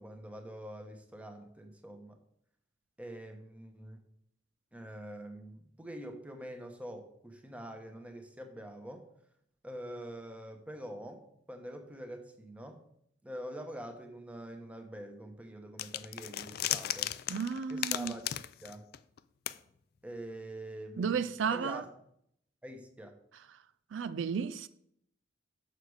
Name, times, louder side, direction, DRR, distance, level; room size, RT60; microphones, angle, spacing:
voice 1, 0.0-2.2 3.0-4.1 4.7-9.1 9.6-12.8 13.2-17.1 17.7-18.3 18.6-18.8 20.0-21.9 22.6-23.2, right 1 dB, 5° right, 1.0 m, -45 dB
sound 1, 15.8-19.2 19.5-19.6, left 13 dB, 55° left, 0.3 m, -35 dB
voice 2, 17.3-18.2 21.0-21.8 23.9-24.7, right 6 dB, 75° right, 0.4 m, -33 dB
6.7 x 6.5 x 4.7 m
head